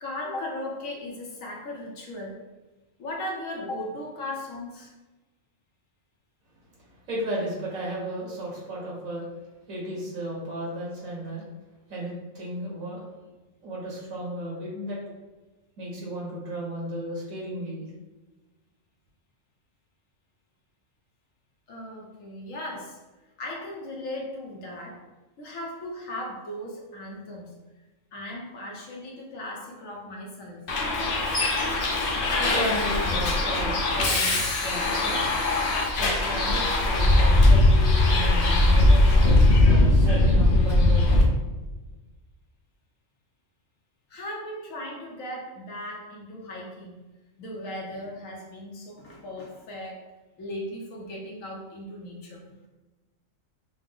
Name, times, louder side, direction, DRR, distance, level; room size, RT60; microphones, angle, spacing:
voice 1, 0.0-2.4 3.0-4.9 21.7-23.0 23.4-25.0 25.4-27.5 28.1-30.7 44.1-47.0 47.4-50.0 50.4-52.6, left 1 dB, 75° left, -1 dB, 1.3 m, -37 dB
voice 2, 6.7-9.2 9.7-11.4 11.9-13.1 13.6-15.0 15.8-17.9 32.4-35.2 36.0-39.4 40.0-41.3, right 1 dB, 80° right, -5 dB, 2.0 m, -34 dB
Bus, 30.7-41.2, left 2 dB, 50° left, 0.8 m, -20 dB
5.9 x 2.1 x 3.7 m, 1.2 s
omnidirectional pair, 1.4 m